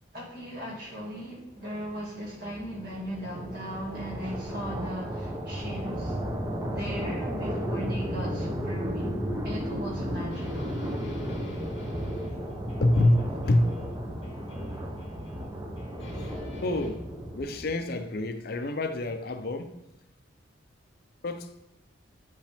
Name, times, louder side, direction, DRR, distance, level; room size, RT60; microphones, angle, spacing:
voice 1, 0.1-6.2 6.7-9.1 9.4-10.8, equal, 55° right, 2.3 m, -38 dB
sound 1, 1.7-17.9, equal, 15° right, 0.7 m, -34 dB
sound 2, 10.3-14.0 14.2-15.5 15.8-16.9, right 1 dB, 70° left, 2.1 m, -47 dB
voice 2, 12.8-13.7 16.6-17.0 17.3-19.7 21.2-21.5, left 1 dB, 50° left, 0.5 m, -26 dB
9.1 x 5.3 x 3.4 m
head